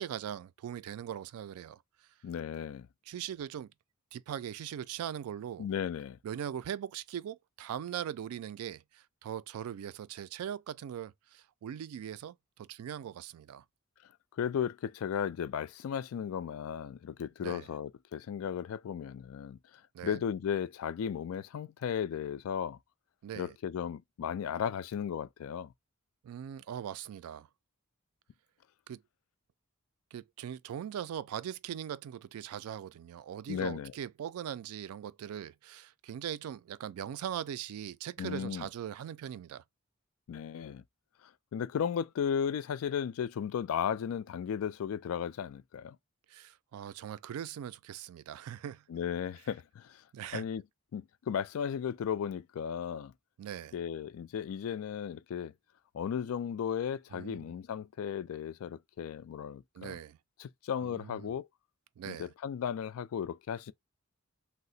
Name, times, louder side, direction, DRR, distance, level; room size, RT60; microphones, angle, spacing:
voice 1, 0.0-1.8 3.1-3.7 4.1-5.7 6.2-13.6 17.4-17.7 19.9-20.2 23.2-23.5 26.2-27.5 28.9-29.0 30.1-39.6 46.3-48.8 50.1-50.5 53.4-53.7 57.1-57.5 59.7-60.2 60.8-61.3 62.0-62.3, right 9 dB, 90° right, 0.3 m, -40 dB
voice 2, 2.2-2.9 5.6-6.2 14.4-19.6 20.0-22.8 23.3-25.7 33.5-33.9 38.2-38.7 40.3-40.8 41.5-46.0 48.9-50.0 50.3-50.6 50.9-53.1 53.7-55.5 55.9-60.0 60.4-61.5 62.1-63.7, left 8 dB, 75° left, 0.3 m, -35 dB
2.8 x 2.0 x 3.9 m
head